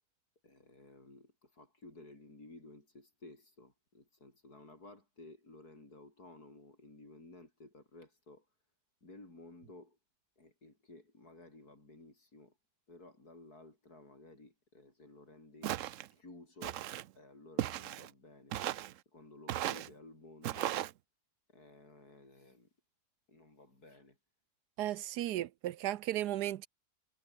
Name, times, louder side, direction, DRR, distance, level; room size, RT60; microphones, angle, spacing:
voice 1, 0.4-8.5 9.0-10.0 10.4-12.6 12.9-15.7 16.1-16.9 17.2-18.6 19.1-20.8 21.5-22.7 23.3-24.2, left 2 dB, 75° left, 7.1 m, -55 dB
Walk footsteps, 15.6-16.1 16.6-17.1 17.6-18.1 18.5-18.9 19.5-19.9 20.4-20.9, right 13 dB, 65° right, 0.9 m, -36 dB
voice 2, 24.8-26.7, right 13 dB, 90° right, 1.3 m, -35 dB
omnidirectional pair, 1.7 m